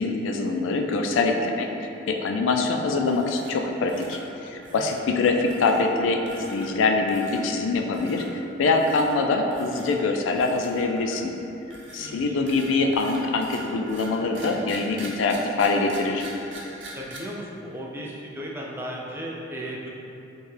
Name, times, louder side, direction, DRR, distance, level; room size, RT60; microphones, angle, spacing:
voice 1, 0.0-8.2 8.6-11.3 11.9-16.3, left 3 dB, 80° left, 3 dB, 0.3 m, -24 dB
sound 1, 3.0-3.6 3.9-4.2 4.6-5.1 5.5-5.8 6.3-6.8 7.1-7.4 7.9-8.3 8.7-9.2 9.5-10.0 10.4-11.3 11.7-17.2, right 1 dB, 70° right, 0.6 m, -43 dB
voice 2, 4.7-5.1 12.0-12.4 16.9-19.9, equal, 10° right, -3 dB, 0.4 m, -36 dB
4.5 x 2.3 x 3.2 m, 2.9 s
head